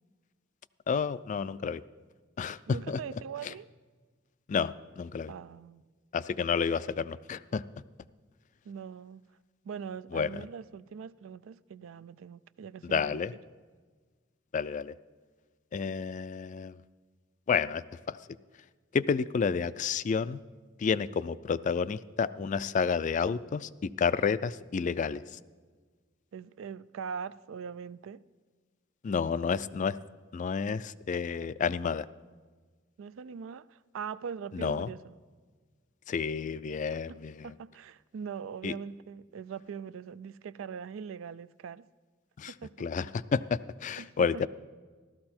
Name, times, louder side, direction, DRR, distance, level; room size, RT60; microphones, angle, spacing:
voice 1, 0.9-1.8 2.4-3.0 3.4-3.5 4.5-5.3 6.1-7.6 10.1-10.4 12.8-13.3 14.5-14.9 15.7-16.8 17.5-18.2 18.9-20.4 20.8-25.4 29.0-30.0 30.3-32.1 34.5-34.9 36.1-37.5 38.6-38.8 42.4-42.5 42.8-44.5, left 6 dB, 40° left, 0.3 m, -30 dB
voice 2, 2.7-3.7 5.3-5.8 8.7-9.2 9.6-13.2 26.3-28.2 33.0-35.1 37.1-37.2 37.4-41.9 42.5-42.7 44.0-44.4, right 6 dB, 85° right, 0.4 m, -42 dB
14.0 x 13.0 x 4.3 m
head